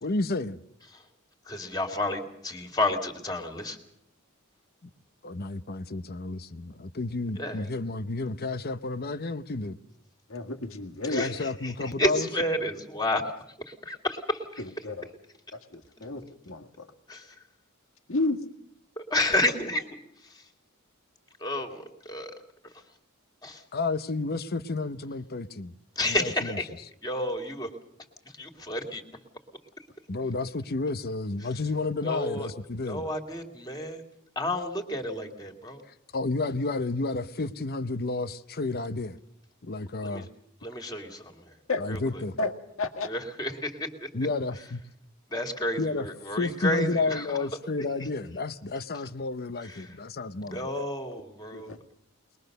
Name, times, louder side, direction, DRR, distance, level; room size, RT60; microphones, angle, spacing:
voice 1, 0.0-0.6 5.2-9.8 11.1-12.3 23.7-25.7 26.0-26.6 30.1-33.1 36.1-39.2 39.6-40.3 41.8-42.3 44.1-44.8 45.8-46.1 46.4-50.7, left 3 dB, 45° left, 0.8 m, -31 dB
voice 2, 1.5-3.8 7.4-7.6 11.1-11.3 11.6-11.7 12.0-13.2 13.9-14.6 16.0-16.1 17.1-17.3 19.0-20.0 21.4-22.3 23.4-23.6 26.0-26.7 27.0-27.7 28.4-29.0 32.0-32.5 32.9-34.0 34.4-35.8 40.0-40.3 40.6-41.3 41.9-42.0 43.0-44.1 45.3-47.4 49.6-49.9 50.5-51.7, left 1 dB, 20° left, 2.5 m, -30 dB
voice 3, 10.3-11.2 14.6-15.1 15.5-16.9 18.1-18.4 41.7-41.9 42.4-42.5 42.8-43.1 51.5-51.8, left 3 dB, 65° left, 1.9 m, -31 dB
22.0 x 21.5 x 6.7 m
head